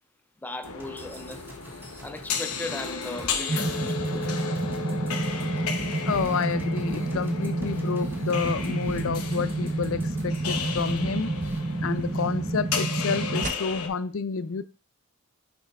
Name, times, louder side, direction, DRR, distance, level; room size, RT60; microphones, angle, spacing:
voice 1, 0.4-1.5 2.0-4.0, left 2 dB, 10° left, 0.4 m, -37 dB
sound 1, 0.6-13.9, left 5 dB, 90° left, 0.9 m, -34 dB
sound 2, 0.6-11.0 11.4-11.6, right 1 dB, 10° right, 1.0 m, -46 dB
sound 3, 3.5-13.5, right 2 dB, 35° right, 0.7 m, -29 dB
voice 2, 6.1-11.4 11.8-14.6, left 5 dB, 65° left, 0.4 m, -29 dB
6.8 x 6.0 x 2.3 m
head